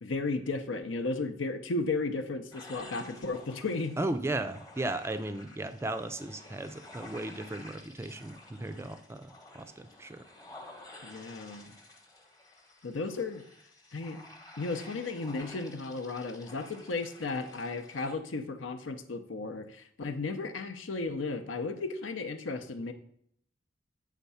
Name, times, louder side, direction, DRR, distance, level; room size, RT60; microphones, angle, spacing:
voice 1, 0.0-4.0 11.0-11.7 12.8-13.4 13.9-14.2 14.6-22.9, left 3 dB, 80° left, 9 dB, 0.7 m, -34 dB
sound 1, 2.5-18.2, left 2 dB, 20° left, 1.0 m, -52 dB
voice 2, 4.0-10.2, right 2 dB, 15° right, 9 dB, 0.4 m, -36 dB
8.2 x 3.6 x 5.6 m, 0.68 s
head